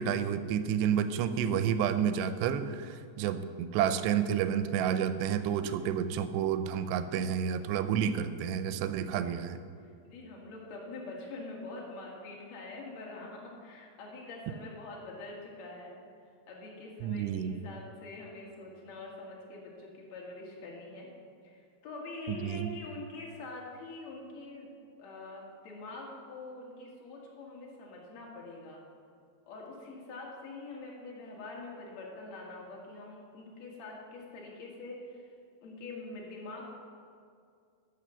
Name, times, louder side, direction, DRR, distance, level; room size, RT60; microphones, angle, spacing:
voice 1, 0.0-9.6 17.0-17.6 22.4-22.8, right 8 dB, 90° right, 11 dB, 2.7 m, -30 dB
voice 2, 9.8-15.9 16.5-21.1 21.4-24.7 25.0-28.8 29.5-35.4 35.6-36.7, left 2 dB, 50° left, -3 dB, 2.7 m, -45 dB
12.5 x 5.7 x 6.8 m, 2.3 s
omnidirectional pair, 4.8 m